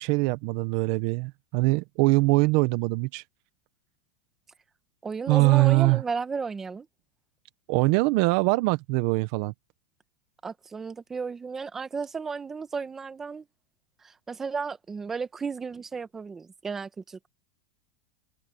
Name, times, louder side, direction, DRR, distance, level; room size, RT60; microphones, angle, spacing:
voice 1, 0.0-3.2 5.3-6.0 7.7-9.5, right 24 dB, 50° right, 0.6 m, -23 dB
voice 2, 5.0-6.9 10.4-13.4 14.0-17.3, right 5 dB, 10° right, 1.1 m, -34 dB
supercardioid pair, 160°, 3 cm